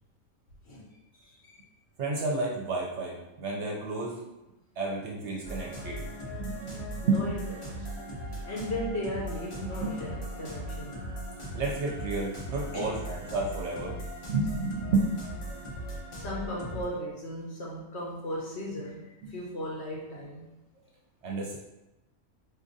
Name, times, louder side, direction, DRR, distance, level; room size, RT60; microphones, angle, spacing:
voice 1, 1.1-1.6 7.0-7.4 7.7-7.9 8.4-10.9 12.7-12.9 16.1-20.5, left 1 dB, 60° left, -4 dB, 0.8 m, -37 dB
voice 2, 2.0-4.2 4.8-7.2 9.8-9.9 11.5-14.0 14.3-15.1 19.2-19.3 21.2-21.6, right 3 dB, 60° right, -2 dB, 0.8 m, -31 dB
sound 1, 5.4-16.8, right 1 dB, 40° left, 0.4 m, -38 dB
4.2 x 2.5 x 2.6 m, 0.99 s
omnidirectional pair, 1.5 m